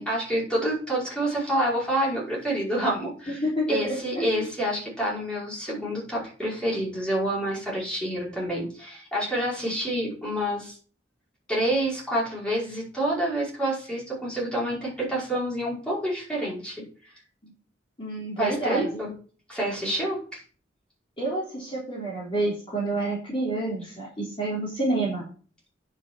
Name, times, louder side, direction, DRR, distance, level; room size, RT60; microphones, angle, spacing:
voice 1, 0.0-3.4 3.7-10.8 11.5-17.1 18.4-19.1 19.5-20.4, right 1 dB, 5° left, -6 dB, 5.4 m, -28 dB
voice 2, 3.3-4.5 17.4-17.5 18.0-19.0 21.2-25.2, right 2 dB, 30° left, -6 dB, 3.8 m, -29 dB
9.6 x 5.8 x 6.3 m, 0.40 s
head